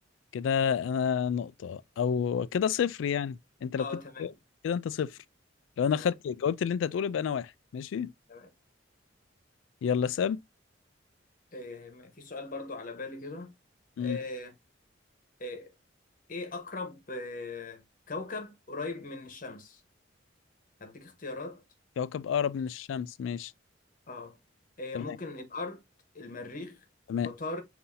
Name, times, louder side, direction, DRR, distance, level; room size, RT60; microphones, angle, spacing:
voice 1, 0.3-3.9 4.2-4.3 4.6-5.1 5.8-8.1 9.8-10.4 14.0-14.2 22.0-23.5 24.9-25.2 27.1-27.3, left 7 dB, 80° left, 0.3 m, -29 dB
voice 2, 3.8-4.3 5.9-6.1 8.3-8.5 11.5-13.5 14.0-14.5 15.4-15.7 16.3-19.8 20.8-21.6 24.1-24.4 24.8-25.8 26.1-26.8 27.2-27.6, left 3 dB, 45° left, 1.0 m, -39 dB
5.6 x 2.7 x 2.6 m
head